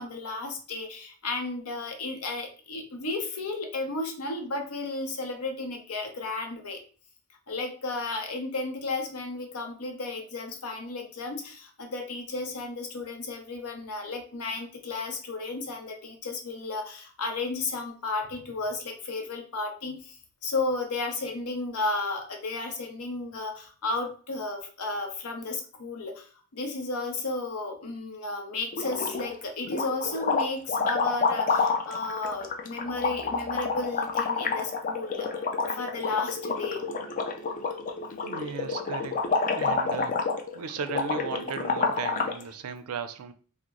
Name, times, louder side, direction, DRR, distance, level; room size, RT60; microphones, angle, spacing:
voice 1, 0.0-6.8 7.5-36.9, left 3 dB, 80° left, 4 dB, 0.7 m, -33 dB
sound 1, 28.7-29.4 29.7-42.4, left 4 dB, 35° left, 0.4 m, -29 dB
voice 2, 38.2-40.2 40.5-43.3, right 6 dB, 80° right, 10 dB, 0.4 m, -36 dB
2.9 x 2.0 x 3.7 m, 0.40 s
head